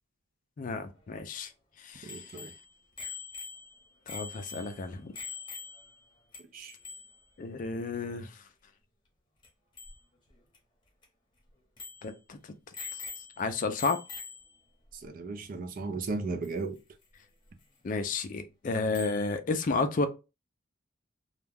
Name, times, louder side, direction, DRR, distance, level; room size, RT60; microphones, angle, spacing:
voice 1, 0.6-1.5 1.8-2.2 4.1-5.1 7.4-8.3 12.0-12.4 13.4-14.0 17.8-20.1, left 3 dB, 40° left, 0.4 m, -31 dB
voice 2, 2.0-2.5 6.5-6.7 14.9-16.8, right 3 dB, 45° right, 0.4 m, -36 dB
Bicycle bell, 2.1-6.0 6.3-6.4 6.7-7.2 9.4-9.5 9.8-10.0 10.5-10.6 11.0-11.1 11.8-12.1 12.7-13.5 13.8-14.6 16.4-16.5 18.9-19.3, left 4 dB, 25° left, 0.8 m, -43 dB
2.3 x 2.1 x 3.3 m
head